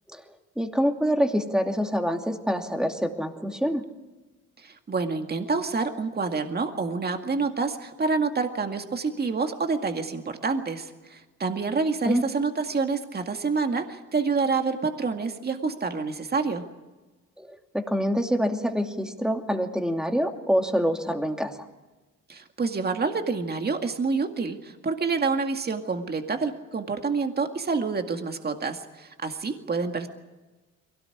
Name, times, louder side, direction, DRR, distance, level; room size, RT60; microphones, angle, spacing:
voice 1, 0.6-3.8 12.1-12.2 17.4-21.6, equal, ahead, 4 dB, 2.6 m, -26 dB
voice 2, 4.6-16.6 22.3-30.1, right 4 dB, 30° right, 5 dB, 2.1 m, -28 dB
23.0 x 18.0 x 9.9 m, 1.2 s
cardioid pair, 90°, 30 cm